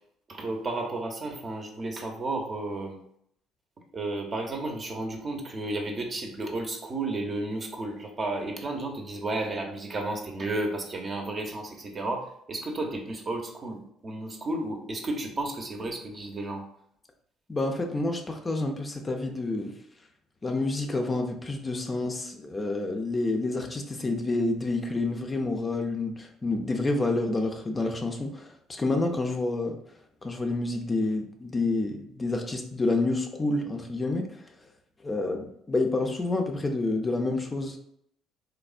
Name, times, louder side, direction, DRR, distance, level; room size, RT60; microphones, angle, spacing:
voice 1, 0.3-3.0 3.9-16.7, right 2 dB, 40° right, 3 dB, 0.6 m, -32 dB
voice 2, 17.5-19.7 20.4-29.8 30.2-34.4 35.0-37.8, left 2 dB, 30° left, 4 dB, 0.4 m, -28 dB
3.2 x 2.1 x 2.4 m, 0.70 s
hypercardioid pair, 60°, 0 cm